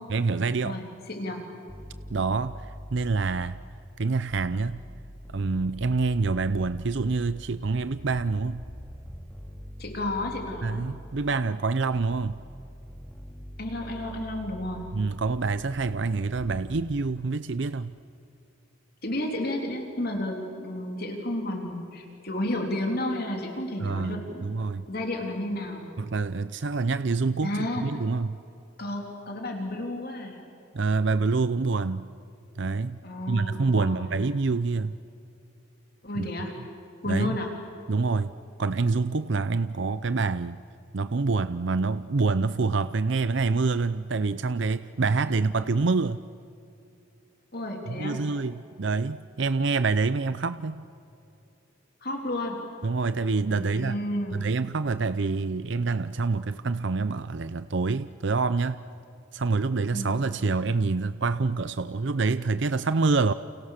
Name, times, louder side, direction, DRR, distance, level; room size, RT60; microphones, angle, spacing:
voice 1, 0.1-0.8 2.1-3.6 4.0-4.8 5.3-8.6 10.6-12.4 14.9-17.9 23.8-24.9 26.0-28.4 30.7-32.1 32.6-33.0 33.3-35.0 36.2-36.3 37.1-37.4 37.9-38.3 38.6-40.6 40.9-46.2 47.9-50.8 52.8-53.9 54.3-58.8 59.3-63.3, right 4 dB, 60° right, 13 dB, 0.6 m, -26 dB
voice 2, 0.6-1.5 9.8-10.9 13.6-14.9 19.0-24.5 24.9-25.9 27.4-27.9 28.8-30.4 33.0-34.2 36.0-36.6 37.0-37.5 45.3-45.4 47.5-48.2 52.0-52.6 53.5-54.5 59.9-60.2, left 1 dB, 50° left, 2 dB, 3.4 m, -32 dB
sound 1, 1.7-3.8 4.3-11.4 11.9-16.9, equal, 5° left, 2.5 m, -43 dB
30.0 x 29.0 x 6.6 m, 2.7 s
head